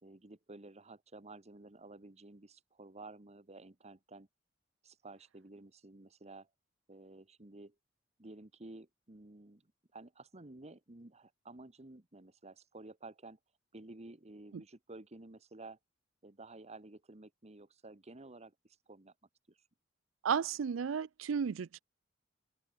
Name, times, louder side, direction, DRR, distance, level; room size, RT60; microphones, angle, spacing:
voice 1, 0.0-4.3 4.8-6.5 6.9-7.7 8.2-13.4 13.7-15.8 16.2-19.1 19.5-19.6, right 2 dB, 35° right, 1.4 m, -53 dB
voice 2, 20.2-21.8, right 7 dB, 90° right, 0.4 m, -33 dB
open air
head